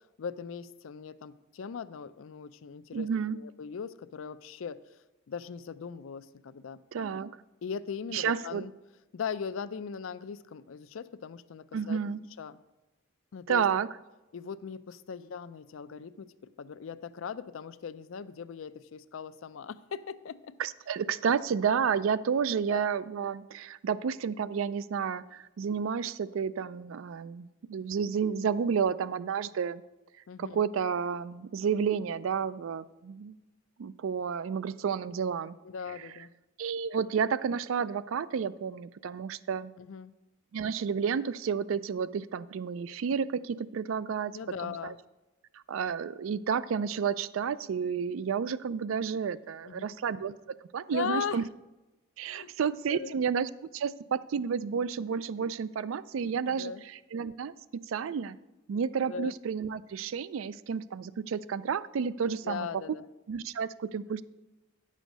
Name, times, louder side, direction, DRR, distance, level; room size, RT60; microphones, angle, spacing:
voice 1, 0.2-3.1 3.3-4.8 5.3-6.8 7.6-8.7 9.1-12.0 12.4-12.6 13.3-13.7 14.3-16.3 16.6-20.6 22.7-22.9 30.3-30.6 35.6-36.3 39.8-40.1 44.3-45.0 49.6-49.9 50.9-51.5 52.2-52.5 52.9-53.2 56.4-56.8 59.1-59.3 62.4-63.1, left 6 dB, 70° left, 15 dB, 0.4 m, -39 dB
voice 2, 2.9-3.4 6.9-7.3 8.1-8.6 11.7-12.2 13.5-13.9 20.6-29.8 30.4-33.4 33.8-35.6 36.6-39.7 40.5-44.3 44.6-44.9 45.7-51.4 52.2-57.5 57.9-58.4 58.7-62.7 63.3-64.2, right 6 dB, 70° right, 17 dB, 0.4 m, -31 dB
10.0 x 6.4 x 5.2 m, 1.1 s
head